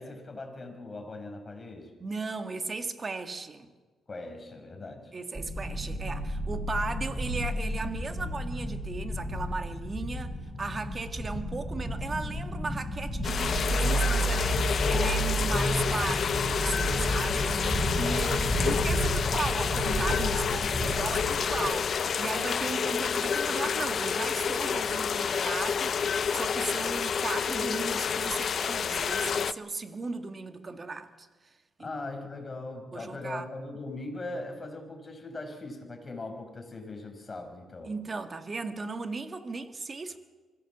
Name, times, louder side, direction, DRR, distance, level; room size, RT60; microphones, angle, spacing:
voice 1, 0.0-1.9 4.1-5.1 18.5-18.9 31.8-37.9, left 2 dB, 30° left, 5.5 m, -40 dB
voice 2, 2.0-3.7 5.1-26.0 26.3-31.3 31.8-31.9 32.9-33.5 37.9-40.2, right 3 dB, 30° right, 1.9 m, -36 dB
sound 1, 5.3-21.7, equal, ahead, 5.9 m, -31 dB
sound 2, 13.2-29.5, left 7 dB, 50° left, 0.7 m, -29 dB
25.0 x 16.5 x 7.4 m
cardioid pair, 90°, 0 cm